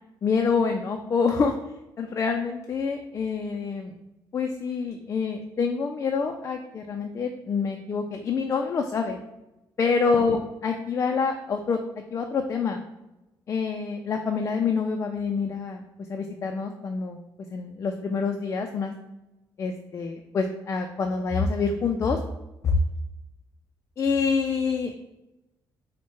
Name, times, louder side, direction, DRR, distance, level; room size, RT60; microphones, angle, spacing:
voice 1, 0.2-1.5 2.0-3.9 4.3-9.2 9.8-11.8 12.1-12.8 13.5-15.8 16.1-17.2 17.5-18.9 19.6-22.2 22.6-22.8 24.0-24.9, left 5 dB, 35° left, 4 dB, 0.3 m, -26 dB
4.5 x 2.1 x 4.4 m, 0.98 s
cardioid pair, 130°, 8 cm